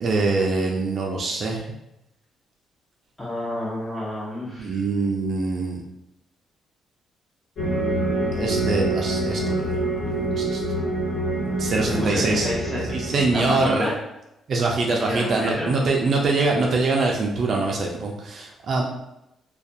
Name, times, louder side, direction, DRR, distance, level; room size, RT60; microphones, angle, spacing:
voice 1, 0.0-1.6 4.6-5.8 8.3-9.8 10.0-10.6 11.6-12.5 12.9-13.9 14.5-18.8, right 3 dB, 55° right, -1 dB, 0.3 m, -24 dB
voice 2, 3.2-4.7 11.9-12.9 13.3-13.9 14.9-15.7, left 1 dB, 20° left, -7 dB, 0.7 m, -29 dB
sound 1, 7.6-13.7, right 1 dB, 55° left, 1.3 m, -26 dB
2.4 x 2.2 x 2.6 m, 0.88 s
cardioid pair, 90°, 0 cm